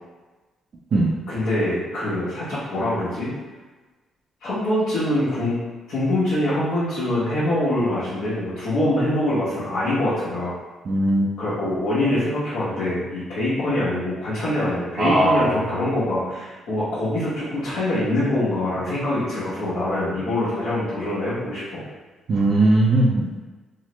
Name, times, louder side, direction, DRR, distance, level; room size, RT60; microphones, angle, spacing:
voice 1, 1.3-3.3 4.4-5.5 5.9-10.5 11.4-21.8, left 1 dB, 75° left, -12 dB, 1.0 m, -24 dB
voice 2, 10.9-11.3 15.0-15.6 22.3-23.3, right 1 dB, 50° right, -5 dB, 0.4 m, -18 dB
3.0 x 2.1 x 3.0 m, 1.3 s
cardioid pair, 90°, 0 cm